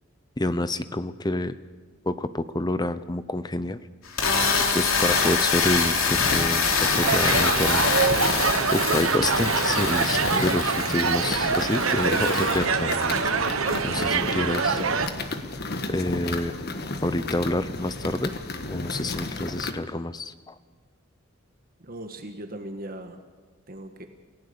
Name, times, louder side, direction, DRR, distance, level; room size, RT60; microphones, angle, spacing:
voice 1, 0.4-1.5 2.0-3.8 4.7-7.8 8.2-13.3 13.8-14.8 15.9-16.6 17.0-18.3 18.7-20.5, left 1 dB, 20° left, 13 dB, 0.8 m, -28 dB
sound 1, 4.1-12.6, left 5 dB, 85° left, 3.1 m, -25 dB
sound 2, 6.0-19.7, left 2 dB, 50° left, 1.5 m, -33 dB
sound 3, 7.0-15.1, right 5 dB, 80° right, 1.3 m, -25 dB
voice 2, 21.8-23.2 23.7-24.1, right 1 dB, 45° right, 6 dB, 1.6 m, -38 dB
28.5 x 17.0 x 7.0 m, 1.4 s
head